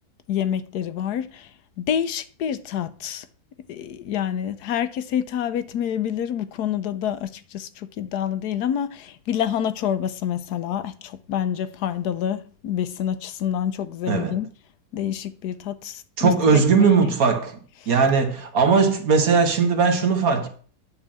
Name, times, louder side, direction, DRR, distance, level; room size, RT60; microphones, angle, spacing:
voice 1, 0.3-1.5 1.8-3.3 3.7-14.5 14.9-17.0, left 9 dB, 80° left, 1.3 m, -27 dB
voice 2, 14.1-14.4 16.2-17.6 17.9-20.5, right 5 dB, 65° right, 1.7 m, -19 dB
10.0 x 4.0 x 7.4 m
omnidirectional pair, 1.7 m